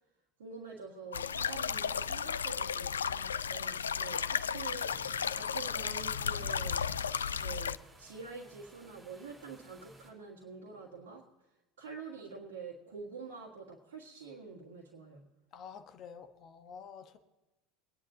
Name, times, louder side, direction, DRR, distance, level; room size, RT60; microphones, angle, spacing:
voice 1, 0.4-6.8 7.4-11.2 11.8-15.2, right 5 dB, 65° right, -3 dB, 1.8 m, -47 dB
sound 1, 1.1-7.8, left 7 dB, 75° left, 0.3 m, -34 dB
sound 2, 4.8-10.1, right 1 dB, 15° right, 4.6 m, -56 dB
voice 2, 15.5-17.2, left 6 dB, 40° left, 8 dB, 1.1 m, -49 dB
22.0 x 10.0 x 2.8 m, 1.1 s
figure-of-eight pair, 75°, 0 cm